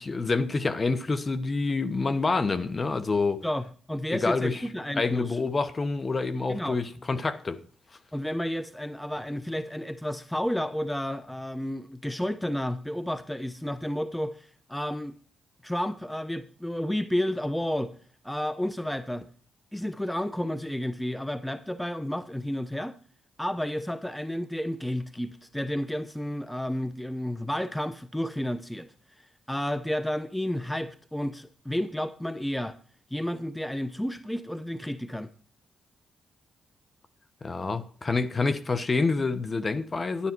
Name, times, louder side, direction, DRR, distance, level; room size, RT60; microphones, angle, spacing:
voice 1, 0.0-3.4 4.1-4.6 4.9-7.6 37.4-40.3, left 3 dB, 40° left, 1.1 m, -27 dB
voice 2, 3.4-5.4 6.5-6.8 8.1-15.2 15.6-17.9 18.2-19.3 19.7-23.0 23.4-28.9 29.5-32.8 33.1-35.3, left 1 dB, 5° left, 0.8 m, -31 dB
10.5 x 10.0 x 4.6 m
supercardioid pair, 55°, 0 cm